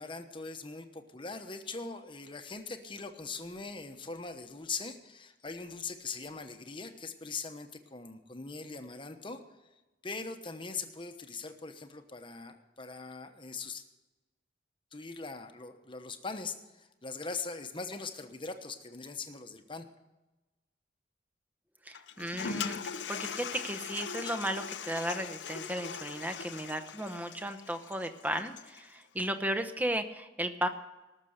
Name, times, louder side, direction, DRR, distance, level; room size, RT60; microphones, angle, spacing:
voice 1, 0.0-9.7 10.0-13.8 14.9-19.9, left 4 dB, 30° left, 6 dB, 1.0 m, -41 dB
voice 2, 21.8-30.7, right 1 dB, 10° right, 8 dB, 0.9 m, -35 dB
Toilet flush, 21.9-28.9, left 7 dB, 80° left, 0.6 m, -40 dB
19.5 x 6.7 x 6.6 m, 1.1 s
head